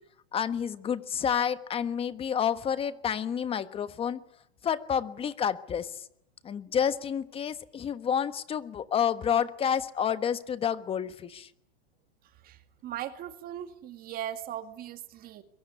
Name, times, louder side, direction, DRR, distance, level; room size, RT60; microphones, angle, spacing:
voice 1, 0.3-4.2 4.6-6.0 6.4-11.5, left 8 dB, 20° left, 13 dB, 1.3 m, -29 dB
voice 2, 12.4-15.4, right 11 dB, 30° right, 9 dB, 2.0 m, -39 dB
23.0 x 23.0 x 9.8 m, 0.75 s
supercardioid pair, 150°, 31 cm